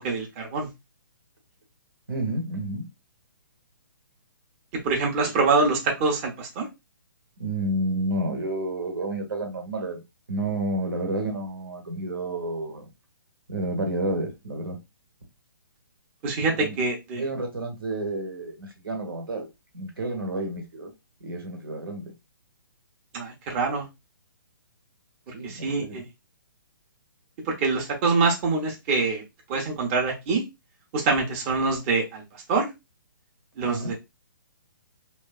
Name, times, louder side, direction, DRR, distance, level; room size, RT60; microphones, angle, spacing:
voice 1, 0.0-0.7 4.8-6.7 16.2-17.2 23.1-23.9 25.4-26.0 27.5-29.2 29.5-30.4 30.9-32.2 32.5-32.7 33.6-33.9, right 4 dB, 30° right, 0.8 m, -25 dB
voice 2, 2.1-2.9 7.4-10.0 10.3-12.9 13.5-14.8 16.5-16.8 17.1-19.5 19.7-20.9 21.2-22.1 25.3-26.1 33.6-33.9, right 2 dB, 85° right, 1.2 m, -30 dB
3.1 x 2.3 x 2.3 m
hypercardioid pair, 140°, 12 cm